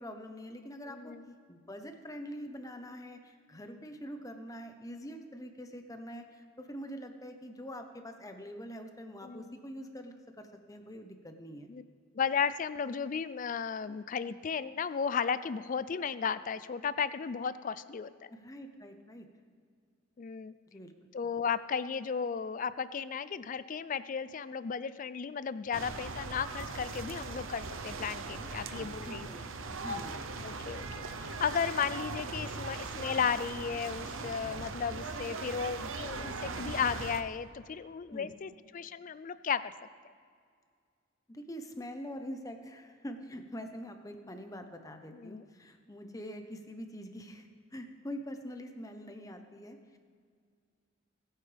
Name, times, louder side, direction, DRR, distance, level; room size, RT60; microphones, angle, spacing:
voice 1, 0.0-1.1 1.5-11.7 18.3-19.3 20.7-20.9 28.6-28.7 29.0-30.3 38.1-38.3 41.3-50.0, equal, 15° left, 6 dB, 0.9 m, -44 dB
voice 2, 0.9-1.3 9.2-9.6 11.7-11.8 12.2-18.3 20.2-20.6 21.1-29.3 30.4-39.7 45.1-45.4, left 6 dB, 40° left, 15 dB, 0.4 m, -34 dB
sound 1, 25.7-37.2, right 3 dB, 80° right, 0.8 m, -40 dB
20.5 x 9.0 x 3.4 m, 2.1 s
head